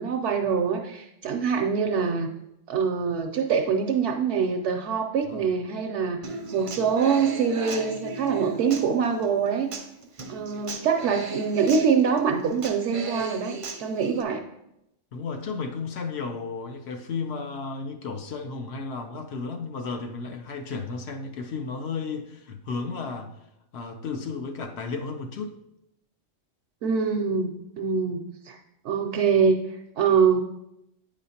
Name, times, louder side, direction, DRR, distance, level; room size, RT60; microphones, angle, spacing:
voice 1, 0.0-2.3 2.7-9.7 10.3-14.4 26.8-28.6 28.8-30.4, right 6 dB, 70° right, 3 dB, 0.8 m, -24 dB
Human voice / Acoustic guitar, 6.2-14.2, right 4 dB, 50° right, 0.4 m, -37 dB
voice 2, 15.1-23.3 23.7-25.6, left 4 dB, 60° left, 6 dB, 0.8 m, -33 dB
8.5 x 5.0 x 2.8 m, 0.84 s
omnidirectional pair, 1.3 m